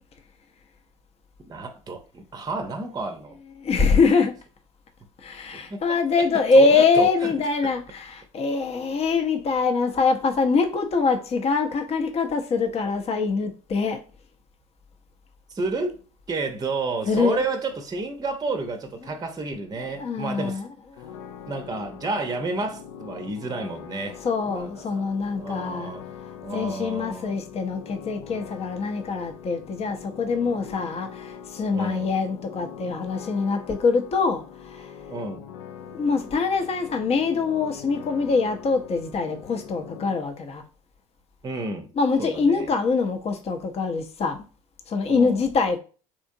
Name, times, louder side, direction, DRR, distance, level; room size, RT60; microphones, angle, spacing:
voice 1, 1.5-3.4 3.9-4.0 5.5-6.0 6.5-7.3 7.6-7.7 15.5-20.6 21.5-24.2 24.5-25.1 25.4-26.1 26.4-27.4 31.7-32.1 35.1-35.4 41.4-41.9 42.2-42.7 45.1-45.4, right 3 dB, 25° right, 0.7 m, -31 dB
voice 2, 3.6-4.3 5.2-14.0 17.1-17.4 20.0-20.7 21.0-21.1 24.2-25.9 26.5-35.0 35.8-40.6 42.0-44.4 44.9-45.8, left 4 dB, 40° left, 0.7 m, -24 dB
sound 1, 21.0-40.2, left 8 dB, 70° left, 0.4 m, -42 dB
3.5 x 2.8 x 2.6 m
hypercardioid pair, 65°, 17 cm